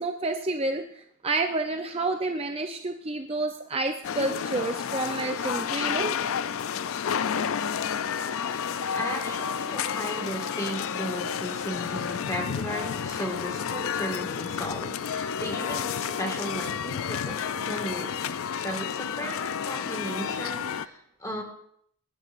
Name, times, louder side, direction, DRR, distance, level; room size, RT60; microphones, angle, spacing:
voice 1, 0.0-6.1, right 2 dB, 25° right, 5 dB, 0.5 m, -29 dB
sound 1, 4.0-20.9, left 7 dB, 60° left, 0.4 m, -31 dB
voice 2, 8.4-21.4, equal, 15° left, 2 dB, 1.8 m, -36 dB
21.0 x 10.5 x 2.5 m, 0.69 s
head